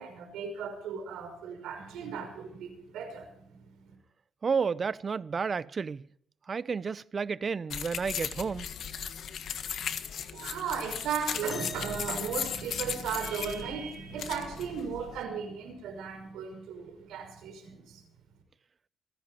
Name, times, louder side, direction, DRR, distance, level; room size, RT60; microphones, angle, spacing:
voice 1, 0.0-4.0 10.3-18.0, right 6 dB, 85° right, 5.7 m, -36 dB
voice 2, 4.4-6.0 6.5-8.7, right 5 dB, 40° right, 0.6 m, -31 dB
sound 1, 7.7-15.2, left 8 dB, 65° left, 1.4 m, -37 dB
sound 2, 11.5-13.4 15.0-15.1 15.9-16.2 17.1-17.2, left 2 dB, 45° left, 7.8 m, -45 dB
27.0 x 10.5 x 4.3 m
cardioid pair, 90°, 0 cm